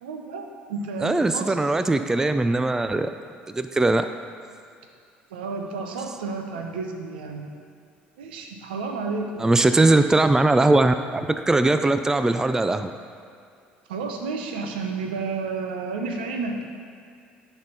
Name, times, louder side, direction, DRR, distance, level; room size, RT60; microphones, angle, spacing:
voice 1, 0.0-1.6 5.3-7.5 8.2-9.4 13.9-16.6, right 4 dB, 75° right, 4 dB, 0.8 m, -31 dB
voice 2, 1.0-3.1 3.5-4.1 9.4-12.9, right 2 dB, 10° right, 9 dB, 0.3 m, -20 dB
10.5 x 3.5 x 5.7 m, 2.4 s
figure-of-eight pair, 60°, 5 cm